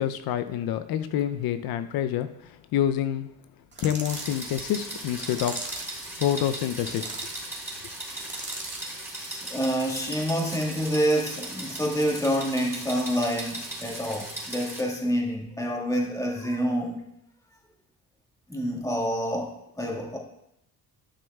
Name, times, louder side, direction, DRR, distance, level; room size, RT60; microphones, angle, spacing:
voice 1, 0.0-2.3 2.7-3.3 3.8-5.6 6.2-7.1, left 10 dB, 75° left, 11 dB, 0.5 m, -27 dB
sound 1, 3.7-4.4 5.1-6.0 6.7-7.4 8.1-8.9, right 3 dB, 30° right, 1.6 m, -38 dB
sound 2, 4.0-14.8, right 1 dB, 5° right, 2.7 m, -38 dB
voice 2, 9.2-17.0 18.5-19.5 19.8-20.2, equal, 10° left, -1 dB, 1.7 m, -27 dB
12.5 x 6.1 x 2.3 m, 0.77 s
cardioid pair, 100°, 37 cm